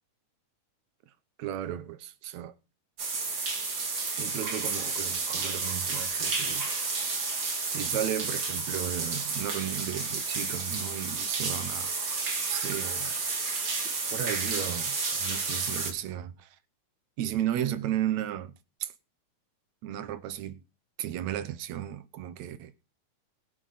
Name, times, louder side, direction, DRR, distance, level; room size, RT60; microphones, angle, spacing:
voice 1, 1.4-2.5 4.2-6.7 7.7-11.9 12.5-13.1 14.1-16.5 17.2-18.5 18.8-18.9 19.8-20.6 21.0-22.7, right 11 dB, 70° right, 2.1 m, -34 dB
sound 1, 3.0-15.9, right 4 dB, 40° right, 3.1 m, -31 dB
22.0 x 7.9 x 4.2 m
omnidirectional pair, 3.6 m